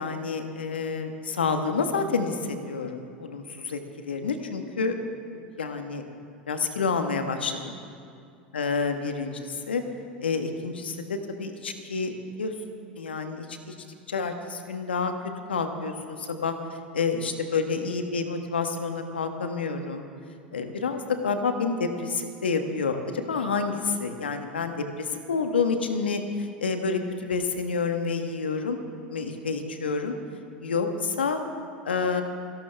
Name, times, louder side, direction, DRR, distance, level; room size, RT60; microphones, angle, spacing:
voice 1, 0.0-5.0 5.3-6.0 6.5-7.8 8.5-9.8 10.2-12.5 13.0-13.7 14.1-15.1 15.5-20.1 20.5-28.8 29.1-30.2 30.6-31.4 31.8-32.2, left 4 dB, 85° left, 6 dB, 1.3 m, -29 dB
29.5 x 12.0 x 3.4 m, 2.5 s
hypercardioid pair, 90°, 5 cm